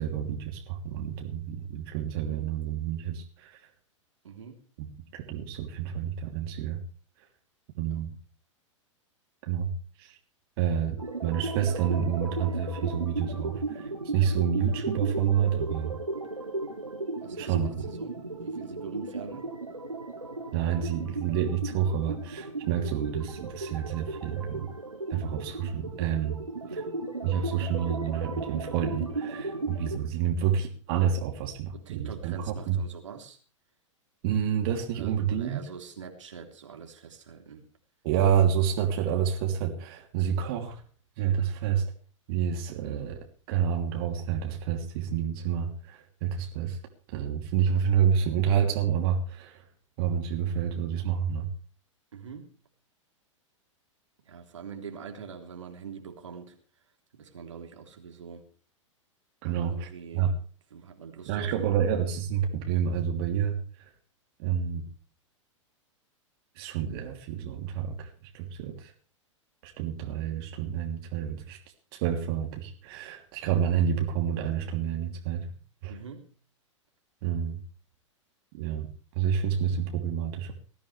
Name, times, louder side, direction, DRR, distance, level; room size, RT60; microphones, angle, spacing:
voice 1, 0.0-3.6 4.8-4.9 5.1-6.8 7.8-8.1 9.5-9.7 10.0-10.2 10.6-15.9 17.4-17.7 20.5-24.7 25.1-26.4 26.7-26.8 27.2-32.8 34.2-35.6 38.0-40.8 41.2-41.9 42.3-43.2 43.5-46.8 47.1-49.6 50.0-51.5 59.4-59.9 60.1-60.3 61.3-63.9 64.4-64.9 66.6-68.9 69.6-71.6 71.9-75.5 75.8-76.0 77.2-77.6 78.5-78.9 79.1-80.5, right 8 dB, 50° right, 3.0 m, -28 dB
voice 2, 2.2-2.5 4.2-4.7 7.9-8.0 17.2-19.5 31.7-33.4 34.9-37.7 52.1-52.6 54.2-56.6 57.1-58.5 59.4-60.3 60.7-61.7 75.9-76.3, right 6 dB, 70° right, 3.5 m, -44 dB
sound 1, 11.0-30.0, right 2 dB, 90° right, 2.7 m, -36 dB
20.5 x 15.0 x 3.4 m
figure-of-eight pair, 100°, 16 cm